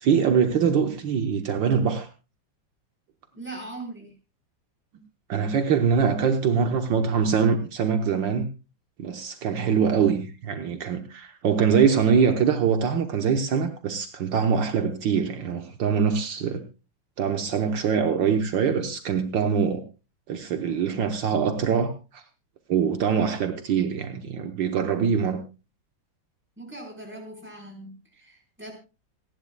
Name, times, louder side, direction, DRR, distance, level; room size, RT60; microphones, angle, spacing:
voice 1, 0.0-2.1 5.3-8.5 9.0-16.6 17.2-19.8 20.3-22.2 22.7-25.4, right 6 dB, 70° right, 6 dB, 1.7 m, -23 dB
voice 2, 3.4-4.1 26.6-28.7, right 2 dB, 5° right, 1 dB, 4.3 m, -40 dB
27.5 x 10.5 x 2.3 m, 0.30 s
omnidirectional pair, 2.1 m